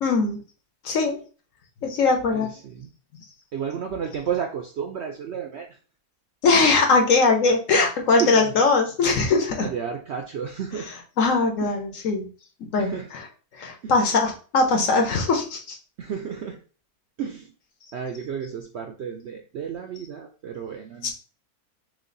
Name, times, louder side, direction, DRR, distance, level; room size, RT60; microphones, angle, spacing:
voice 1, 0.0-0.4 0.8-1.2 1.8-2.5 6.4-9.7 11.2-12.3 12.7-13.2 13.6-15.8 21.0-21.1, left 3 dB, 65° left, 3 dB, 1.1 m, -21 dB
voice 2, 2.3-2.9 3.5-5.7 8.2-8.5 9.6-10.9 11.6-11.7 12.8-13.1 13.8-14.0 16.0-16.6 17.2-17.5 17.9-21.1, right 7 dB, 65° right, 3 dB, 0.6 m, -32 dB
3.3 x 3.2 x 3.8 m, 0.37 s
omnidirectional pair, 1.6 m